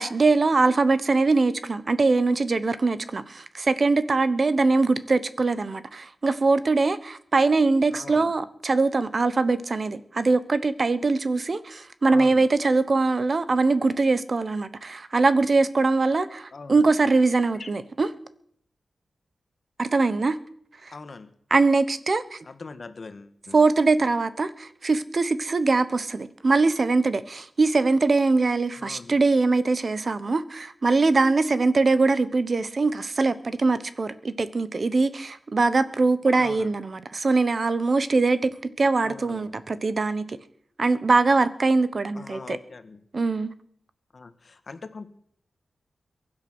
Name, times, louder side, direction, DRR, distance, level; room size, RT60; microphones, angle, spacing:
voice 1, 0.0-18.1 19.8-20.4 20.8-20.9 21.5-22.4 23.5-40.4 40.8-42.6 43.1-43.5, right 3 dB, 40° right, 1.0 m, -22 dB
voice 2, 7.9-8.3 12.1-12.4 16.5-16.9 17.5-17.7 20.9-21.3 22.4-23.6 28.8-29.1 36.4-36.7 39.0-39.6 42.1-43.0 44.1-45.1, left 4 dB, 45° left, 1.5 m, -41 dB
22.5 x 9.7 x 6.2 m
wide cardioid pair, 125°, 0 cm